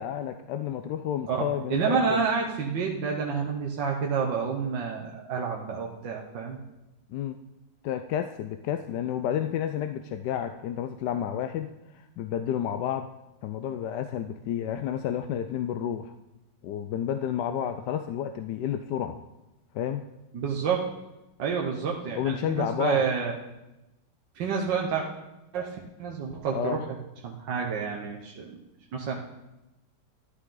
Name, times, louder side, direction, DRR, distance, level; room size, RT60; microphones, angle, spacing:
voice 1, 0.0-2.2 7.1-7.4 7.8-13.1 13.4-16.1 16.6-19.2 19.7-20.0 22.2-23.0 26.5-26.8, left 9 dB, 75° left, 8 dB, 1.1 m, -30 dB
voice 2, 1.3-6.6 20.3-20.9 21.4-23.3 24.4-25.1 25.5-27.0 27.2-28.6 28.9-29.2, right 6 dB, 75° right, -1 dB, 1.7 m, -29 dB
13.0 x 11.5 x 3.8 m, 0.98 s
omnidirectional pair, 2.0 m